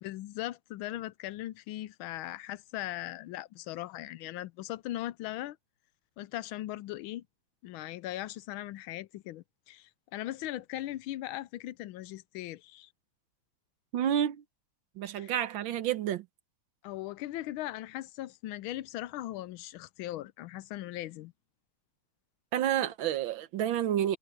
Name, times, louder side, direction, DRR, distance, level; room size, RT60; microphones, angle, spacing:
voice 1, 0.0-5.6 6.2-7.2 7.6-12.9 15.2-15.3 16.8-21.3, left 15 dB, 85° left, 1.4 m, -39 dB
voice 2, 13.9-14.4 15.0-16.2 22.5-24.2, right 10 dB, 75° right, 1.6 m, -29 dB
omnidirectional pair, 2.2 m